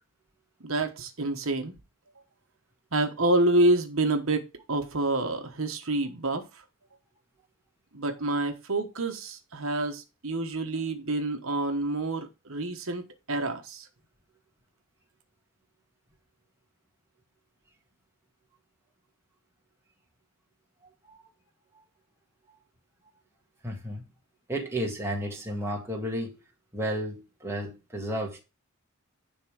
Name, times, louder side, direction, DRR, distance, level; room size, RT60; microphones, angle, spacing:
voice 1, 0.6-1.7 2.9-6.4 7.9-13.9, right 2 dB, 70° right, 1.2 m, -28 dB
voice 2, 23.6-24.0 24.5-26.4 26.7-28.4, equal, 10° right, 1.8 m, -32 dB
10.5 x 3.6 x 4.9 m
head